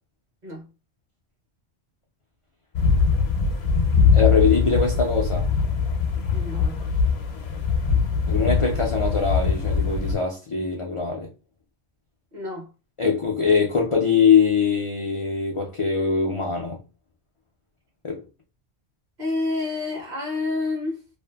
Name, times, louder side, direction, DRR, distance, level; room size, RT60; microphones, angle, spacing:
sound 1, 2.7-10.2, left 5 dB, 70° left, 0.9 m, -22 dB
voice 1, 4.1-5.5 8.3-11.3 13.0-16.8 18.0-18.2, left 5 dB, 55° left, 0.3 m, -22 dB
voice 2, 6.3-6.8 12.3-12.7 19.2-21.0, left 2 dB, 45° right, 1.0 m, -29 dB
2.5 x 2.5 x 2.2 m
omnidirectional pair, 1.1 m